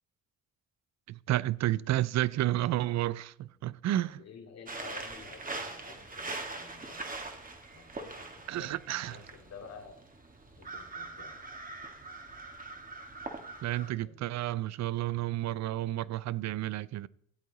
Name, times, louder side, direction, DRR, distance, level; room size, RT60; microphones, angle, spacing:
voice 1, 1.1-4.1 8.5-9.2 13.6-17.1, right 14 dB, 60° right, 0.5 m, -31 dB
voice 2, 4.0-7.1 7.7-8.3 8.6-8.8 9.1-10.0 10.6-11.3 13.7-14.4, left 5 dB, 60° left, 2.6 m, -51 dB
sound 1, 4.7-13.9, right 3 dB, 25° right, 1.9 m, -42 dB
13.0 x 8.4 x 4.1 m
supercardioid pair, 65°, 31 cm